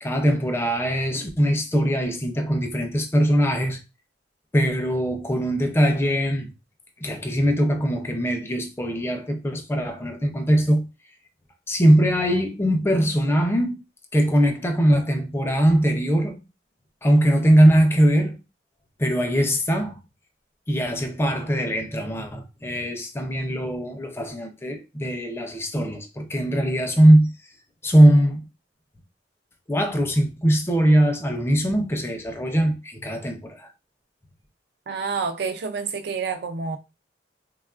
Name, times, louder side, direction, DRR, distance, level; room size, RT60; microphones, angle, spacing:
voice 1, 0.0-3.8 4.5-6.5 7.0-10.8 11.7-13.7 14.1-16.4 17.0-18.4 19.0-20.0 20.7-27.3 27.8-28.4 29.7-33.7, right 1 dB, 15° left, 0.4 m, -21 dB
voice 2, 34.9-36.8, right 5 dB, 65° right, 0.4 m, -28 dB
3.2 x 2.3 x 2.3 m
head